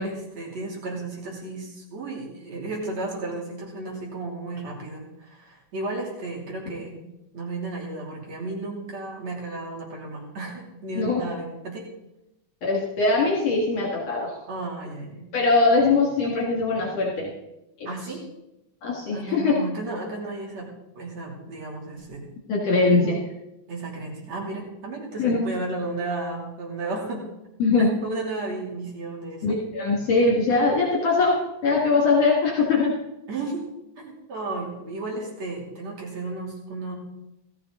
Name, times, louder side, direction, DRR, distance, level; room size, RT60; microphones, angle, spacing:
voice 1, 0.0-11.9 14.5-15.3 17.9-18.2 19.1-20.7 21.0-22.2 23.7-27.3 28.0-29.6 33.3-33.6 34.0-37.0, right 2 dB, 65° right, -2 dB, 4.0 m, -33 dB
voice 2, 12.6-14.4 15.3-17.3 17.8-17.9 18.8-19.6 22.5-23.2 25.2-25.4 27.6-27.9 29.4-32.9, left 3 dB, 65° left, -2 dB, 3.1 m, -21 dB
17.5 x 13.5 x 3.8 m, 0.90 s
omnidirectional pair, 3.3 m